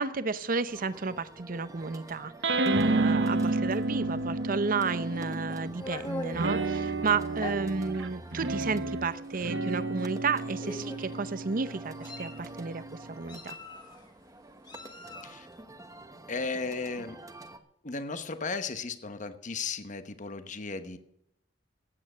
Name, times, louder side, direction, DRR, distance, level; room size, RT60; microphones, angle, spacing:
voice 1, 0.0-12.8 13.1-13.6, right 4 dB, 50° right, 14 dB, 0.7 m, -32 dB
sound 1, 0.7-17.6, right 2 dB, 20° right, 1.1 m, -49 dB
sound 2, 2.4-5.8 6.3-13.1, right 2 dB, 80° right, 1.0 m, -31 dB
Meow, 5.0-6.7 7.4-7.6 8.4-8.5 8.9-9.1 10.1-10.2 10.6-11.1 11.7-12.5 13.3-14.0 14.7-15.4, left 2 dB, 25° left, 1.7 m, -41 dB
voice 2, 16.3-17.2 17.8-21.0, left 4 dB, 45° left, 10 dB, 1.0 m, -35 dB
15.0 x 8.9 x 6.1 m, 0.75 s
head